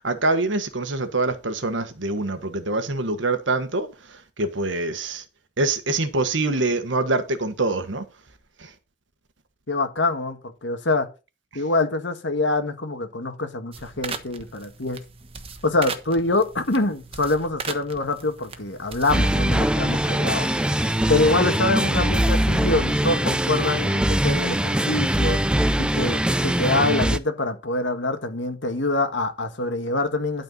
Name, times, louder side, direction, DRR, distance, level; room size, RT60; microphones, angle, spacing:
voice 1, 0.0-3.9 4.4-5.2 5.6-8.0, right 2 dB, 80° right, 1.4 m, -24 dB
voice 2, 9.7-11.1 11.6-15.0 15.6-20.5 21.1-25.4 25.8-30.4, left 2 dB, 75° left, 1.7 m, -25 dB
sound 1, 13.7-19.4, right 5 dB, 30° right, 1.2 m, -38 dB
sound 2, 19.1-27.2, right 1 dB, 5° right, 0.5 m, -22 dB
12.0 x 4.5 x 5.5 m
head